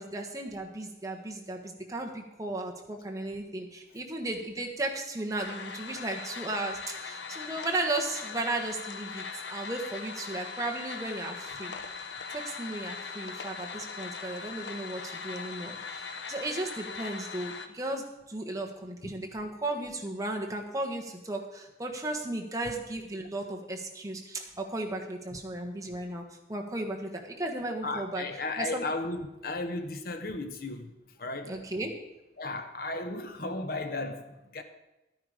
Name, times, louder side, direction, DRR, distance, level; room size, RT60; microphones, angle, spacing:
voice 1, 0.0-11.8 12.3-26.2 26.5-28.2 28.6-28.8 31.5-31.9, right 2 dB, 20° right, 1.4 m, -35 dB
sound 1, 5.4-17.7, left 5 dB, 80° left, 1.0 m, -40 dB
voice 2, 27.8-31.6 32.4-34.6, left 2 dB, 55° left, 1.1 m, -35 dB
13.0 x 9.8 x 5.0 m
head